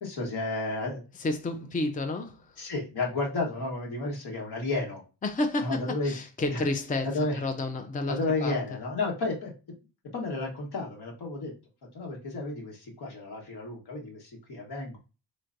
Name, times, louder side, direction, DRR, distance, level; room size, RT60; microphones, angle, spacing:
voice 1, 0.0-1.0 2.6-5.0 5.6-6.1 6.5-6.6 7.0-7.4 8.1-9.5 10.1-11.5 11.9-15.0, left 2 dB, 65° left, 1.5 m, -32 dB
voice 2, 1.2-2.7 5.2-7.1 7.4-8.5, left 2 dB, 20° left, 0.5 m, -31 dB
3.8 x 3.2 x 2.6 m
supercardioid pair, 50°, 42 cm